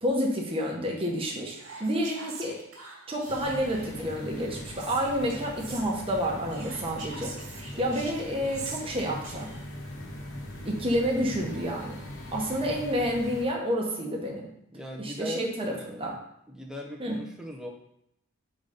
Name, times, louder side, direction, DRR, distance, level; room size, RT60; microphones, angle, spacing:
voice 1, 0.0-2.6 3.1-7.3 7.8-9.5 10.6-12.0 12.3-14.5 15.0-16.1 17.0-17.2, equal, 25° right, -1 dB, 1.1 m, -29 dB
Whispering, 1.4-4.0 4.7-5.9 6.5-9.8, right 4 dB, 65° right, 1.6 m, -44 dB
sound 1, 3.3-13.5, left 1 dB, 65° left, 0.9 m, -41 dB
voice 2, 14.7-16.2 16.5-17.7, left 1 dB, ahead, 0 dB, 0.7 m, -39 dB
5.5 x 4.0 x 5.0 m, 0.77 s
head